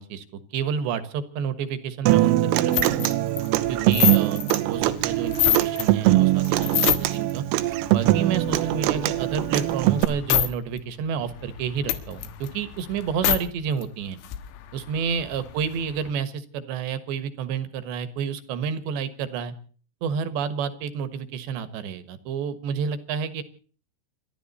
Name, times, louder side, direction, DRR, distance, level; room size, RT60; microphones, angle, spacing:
voice 1, 0.0-3.0 3.7-7.5 7.9-14.2 14.7-19.5 20.0-23.4, right 7 dB, 70° right, 14 dB, 3.2 m, -30 dB
Human voice / Acoustic guitar, 2.1-10.0, right 15 dB, 90° right, 3.8 m, -22 dB
sound 1, 2.7-5.9 6.3-7.3 7.7-10.5 10.8-10.9 11.2-13.4 13.8-13.9 14.1-16.1, left 13 dB, 75° left, 3.8 m, -28 dB
28.5 x 12.0 x 4.2 m, 0.43 s
omnidirectional pair, 5.8 m